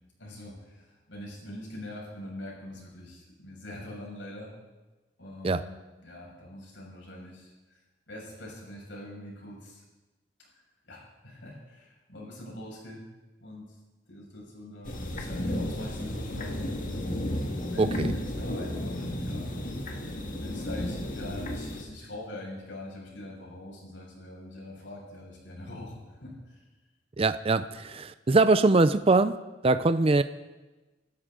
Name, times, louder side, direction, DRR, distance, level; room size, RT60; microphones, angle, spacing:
voice 1, 0.2-4.5 5.2-5.7 6.0-7.8 8.1-9.8 10.9-13.0 13.4-13.7 14.1-16.8 17.7-19.5 19.9-26.6, left 1 dB, 80° left, -2 dB, 6.2 m, -43 dB
sound 1, 14.8-21.8, left 1 dB, 45° left, 1.9 m, -33 dB
voice 2, 17.8-18.1 27.2-29.4 29.6-30.2, right 3 dB, 30° right, 12 dB, 0.5 m, -22 dB
26.5 x 13.0 x 3.8 m, 1.2 s
head